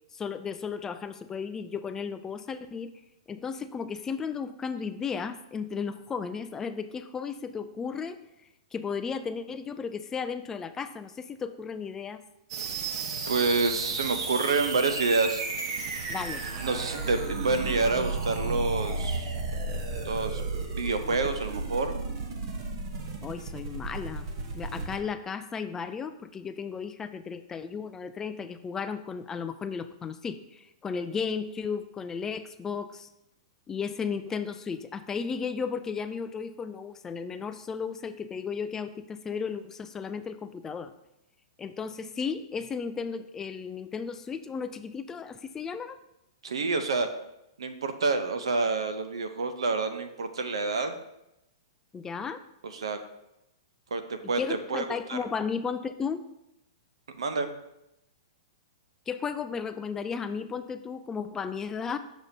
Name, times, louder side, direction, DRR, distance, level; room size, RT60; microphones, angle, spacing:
voice 1, 0.1-2.9 3.3-8.2 8.7-12.2 16.1-16.4 23.2-24.3 24.5-33.1 33.7-40.9 41.6-46.0 51.9-52.4 54.2-56.2 59.1-62.0, left 6 dB, 15° left, 11 dB, 0.3 m, -34 dB
sound 1, 12.5-25.0, right 3 dB, 55° right, 1.1 m, -33 dB
voice 2, 13.3-15.4 16.6-19.4 20.0-20.4 20.7-22.0 46.4-47.1 47.6-51.0 52.6-53.0 53.9-54.4 54.7-55.2 57.2-57.5, right 3 dB, 80° right, 8 dB, 0.7 m, -28 dB
6.6 x 6.1 x 2.7 m, 0.87 s
hypercardioid pair, 120°, 3 cm